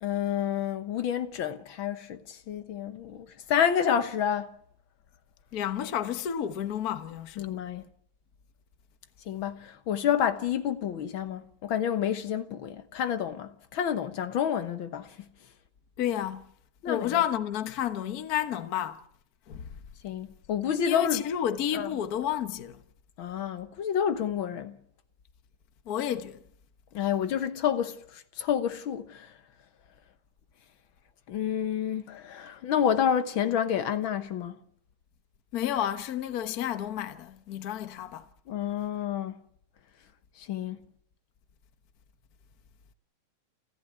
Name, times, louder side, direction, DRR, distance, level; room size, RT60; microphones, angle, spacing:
voice 1, 0.0-4.5 7.4-7.8 9.3-15.1 16.8-17.2 20.0-21.2 21.7-21.9 23.2-24.8 26.9-29.3 31.3-34.6 38.5-39.3 40.4-40.8, left 9 dB, 60° left, 1.4 m, -29 dB
voice 2, 5.5-7.5 16.0-16.5 16.9-19.0 19.5-19.7 20.8-22.8 25.9-26.4 35.5-38.3, left 10 dB, 85° left, 0.8 m, -31 dB
29.5 x 11.5 x 9.5 m
omnidirectional pair, 3.4 m